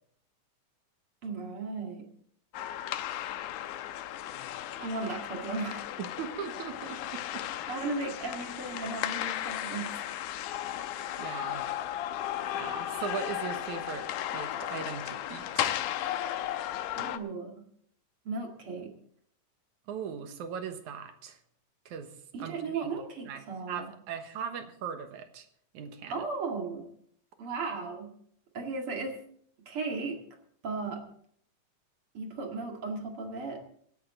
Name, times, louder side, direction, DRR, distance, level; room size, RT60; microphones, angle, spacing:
voice 1, 1.2-2.1 4.8-5.9 7.7-10.0 16.9-17.7 18.2-18.9 22.3-23.9 26.1-26.9 27.4-28.2 28.5-29.2 29.7-30.2 30.6-31.0 32.1-33.6, right 3 dB, 45° right, 2 dB, 2.8 m, -36 dB
sound 1, 2.5-17.2, left 12 dB, 85° left, 2.2 m, -35 dB
voice 2, 6.0-7.4 11.2-11.7 12.5-14.1 14.3-15.8 19.9-21.4 21.9-22.1 22.4-22.9 23.3-23.4 23.7-25.5 25.7-26.2, right 7 dB, 75° right, 7 dB, 2.6 m, -39 dB
25.5 x 9.5 x 3.8 m, 0.64 s
omnidirectional pair, 3.6 m